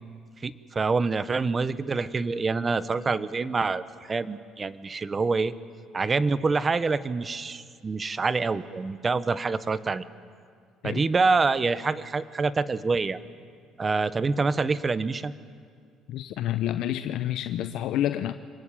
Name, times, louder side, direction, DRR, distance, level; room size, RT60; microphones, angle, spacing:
voice 1, 0.4-5.5 5.9-10.0 10.8-13.2 13.8-15.3, right 4 dB, 30° right, 14 dB, 1.1 m, -26 dB
voice 2, 16.1-18.3, left 12 dB, 75° left, 10 dB, 0.8 m, -28 dB
26.5 x 21.5 x 8.7 m, 2.2 s
supercardioid pair, 85°, 0 cm